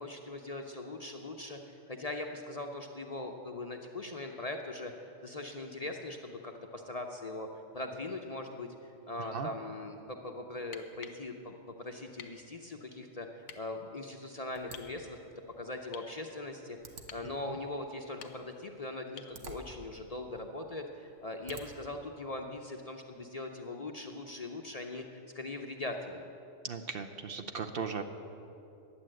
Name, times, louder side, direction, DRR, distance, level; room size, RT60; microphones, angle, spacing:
voice 1, 0.0-7.5 7.7-15.2 15.6-16.8 17.1-26.2, left 2 dB, 40° left, 3 dB, 0.6 m, -41 dB
sound 1, 10.6-11.2 12.2-12.4 13.4-13.6 14.7-14.9 15.9-16.2 17.1-17.3 18.0-18.6 19.2-19.4 21.5-21.7 23.6-23.7, left 7 dB, 70° left, 1.1 m, -49 dB
sound 2, 14.5-22.0, right 3 dB, 75° right, 1.3 m, -54 dB
voice 2, 26.6-28.0, right 5 dB, 60° right, 7 dB, 0.7 m, -37 dB
11.5 x 9.0 x 7.6 m, 2.7 s
omnidirectional pair, 1.3 m